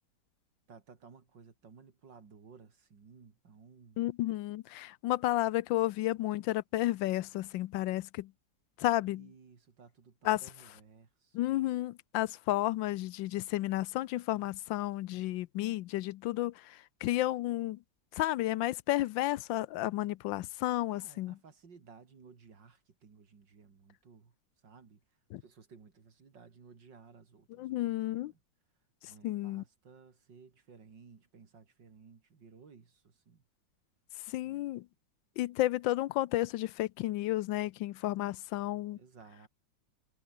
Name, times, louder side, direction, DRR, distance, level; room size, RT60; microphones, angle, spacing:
voice 1, 0.7-4.1 9.0-11.6 20.9-24.3 24.6-25.0 25.4-28.4 29.1-33.4 34.4-34.7 38.9-39.5, right 5 dB, 70° right, 3.2 m, -57 dB
voice 2, 4.0-8.3 8.8-9.3 10.2-10.4 11.3-16.5 17.0-17.8 18.2-21.3 25.3-25.4 27.6-28.3 29.2-29.6 34.3-34.8 35.4-39.0, left 16 dB, 85° left, 1.3 m, -32 dB
omnidirectional pair, 2.1 m